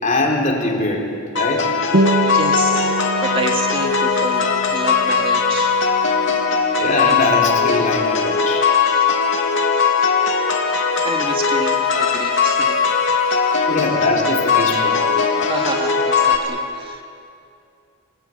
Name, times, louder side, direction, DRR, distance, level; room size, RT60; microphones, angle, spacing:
voice 1, 0.0-1.1 1.3-1.7 6.8-8.7 13.7-15.1, left 2 dB, 35° left, 0 dB, 4.1 m, -22 dB
sound 1, 1.4-16.4, left 5 dB, 60° left, 2.6 m, -19 dB
sound 2, 1.9-6.9, right 2 dB, 65° right, 1.1 m, -26 dB
voice 2, 2.0-5.8 8.8-9.2 9.7-10.1 11.0-13.6 15.4-17.0, right 2 dB, 25° right, 2 dB, 2.4 m, -29 dB
28.5 x 18.5 x 9.3 m, 2.5 s
head